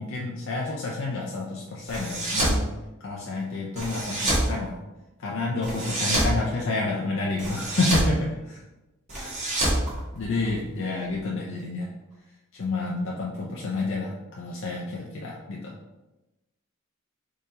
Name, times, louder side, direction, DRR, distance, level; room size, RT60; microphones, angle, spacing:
voice 1, 0.0-2.7 3.0-4.8 5.2-8.6 10.1-11.9 12.5-15.7, left 2 dB, 60° left, -3 dB, 0.5 m, -29 dB
sound 1, 1.9-2.6 3.8-4.5 5.6-6.3 7.4-8.1 9.1-10.6, right 1 dB, 35° right, 1.3 m, -26 dB
4.1 x 3.7 x 2.8 m, 1.0 s
head